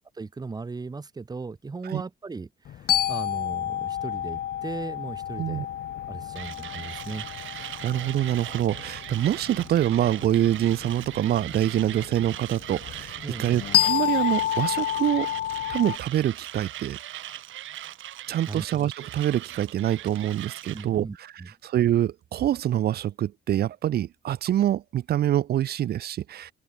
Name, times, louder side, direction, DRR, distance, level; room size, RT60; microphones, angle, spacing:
voice 1, 0.2-5.7 6.1-7.3 13.2-13.6 18.5-18.7 20.7-21.5, right 4 dB, 20° right, 0.8 m, -37 dB
sound 1, 2.6-16.0, left 11 dB, 55° left, 0.5 m, -30 dB
Mechanisms, 6.4-20.9, right 13 dB, 75° right, 2.1 m, -40 dB
voice 2, 7.6-15.3 15.7-17.0 18.3-21.1 21.6-26.5, right 12 dB, 55° right, 0.5 m, -25 dB
sound 2, 13.4-16.2, left 11 dB, 70° left, 4.3 m, -46 dB
open air
cardioid pair, 90°, 20 cm